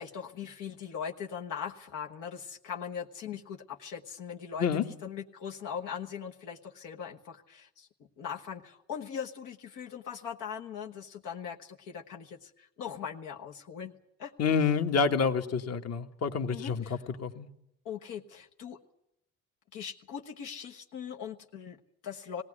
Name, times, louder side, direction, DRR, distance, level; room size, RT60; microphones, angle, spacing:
voice 1, 0.0-7.9 8.2-13.9 14.2-14.3 16.5-17.0 17.8-18.8 19.7-22.4, left 7 dB, 90° left, 1 dB, 1.3 m, -40 dB
voice 2, 14.4-17.5, left 6 dB, 55° left, 7 dB, 1.5 m, -28 dB
18.5 x 17.0 x 9.8 m, 0.79 s
cardioid pair, 90°, 30 cm